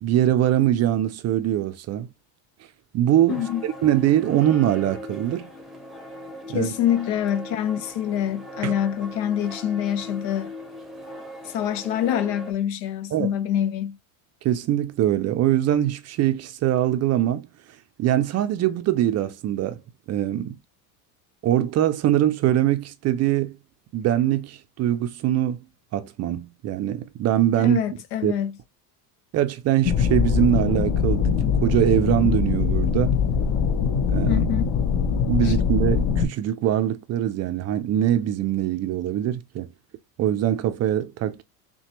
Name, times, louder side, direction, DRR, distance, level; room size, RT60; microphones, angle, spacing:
voice 1, 0.0-2.1 2.9-5.5 6.5-6.7 8.6-8.7 13.1-13.3 14.4-17.5 18.0-19.8 20.1-20.6 21.4-23.6 23.9-25.6 25.9-27.8 28.2-28.3 29.3-33.1 34.0-34.5 35.3-39.7 40.2-41.4, right 12 dB, 35° right, 0.4 m, -22 dB
voice 2, 3.3-3.6 6.5-10.5 11.4-14.0 27.6-28.6 34.3-34.8 35.4-35.5, left 10 dB, 85° left, 0.7 m, -26 dB
sound 1, 3.3-12.5, left 1 dB, ahead, 0.7 m, -39 dB
sound 2, 29.8-36.2, left 7 dB, 45° left, 0.7 m, -22 dB
5.8 x 2.2 x 2.9 m
supercardioid pair, 100°, 50 cm